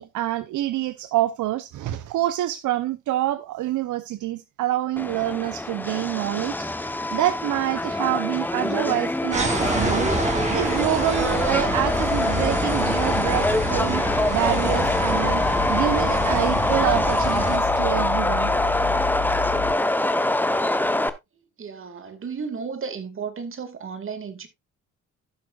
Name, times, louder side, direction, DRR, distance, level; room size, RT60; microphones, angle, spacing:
voice 1, 0.0-6.5 7.1-10.1 10.5-14.0 14.3-15.4 15.7-18.5, right 14 dB, 80° right, 0.7 m, -26 dB
Subway metro underground, 5.0-21.1, left 1 dB, 5° left, 0.9 m, -24 dB
sound 1, 9.3-17.6, right 2 dB, 25° right, 3.1 m, -28 dB
sound 2, 11.2-19.7, left 10 dB, 65° left, 1.2 m, -32 dB
voice 2, 21.6-24.5, right 5 dB, 45° right, 2.2 m, -33 dB
15.5 x 6.2 x 2.4 m
cardioid pair, 90°, 30 cm